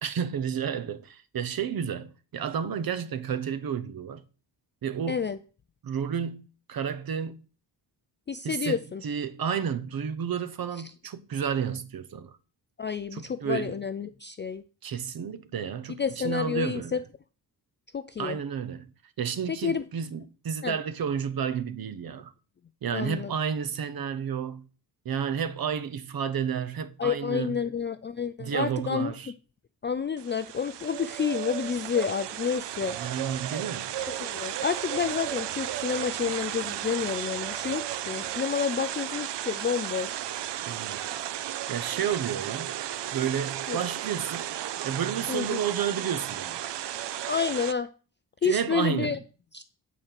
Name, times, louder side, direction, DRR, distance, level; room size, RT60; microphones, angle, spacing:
voice 1, 0.0-4.2 4.8-5.3 5.8-6.4 6.7-7.4 8.4-12.3 13.1-13.8 14.8-17.0 18.2-18.9 19.2-22.3 22.8-24.6 25.0-27.6 28.4-29.3 32.9-33.9 40.6-41.0 41.7-42.7 43.1-44.5 44.8-46.6 48.4-49.2, right 7 dB, 55° right, 0.9 m, -31 dB
voice 2, 5.1-5.4 8.3-9.0 12.8-14.6 16.0-17.0 17.9-18.4 19.6-19.8 20.6-20.8 22.9-23.3 27.0-29.1 29.8-33.0 34.2-40.2 43.7-43.8 45.3-45.6 47.3-47.9 48.4-49.2 49.5-49.6, left 6 dB, 30° left, 0.3 m, -29 dB
sound 1, 30.2-47.7, right 12 dB, 80° right, 0.6 m, -34 dB
9.2 x 4.4 x 7.4 m
wide cardioid pair, 165°, 41 cm